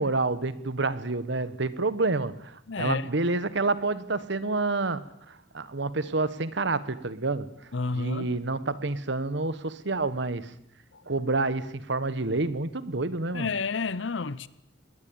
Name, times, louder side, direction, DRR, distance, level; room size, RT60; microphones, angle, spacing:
voice 1, 0.0-7.5 7.9-10.5 11.1-13.5, right 3 dB, 65° right, 1.4 m, -28 dB
voice 2, 2.7-3.1 7.7-8.3 10.9-11.0 13.3-14.5, left 4 dB, 65° left, 0.8 m, -30 dB
20.5 x 18.5 x 8.9 m
head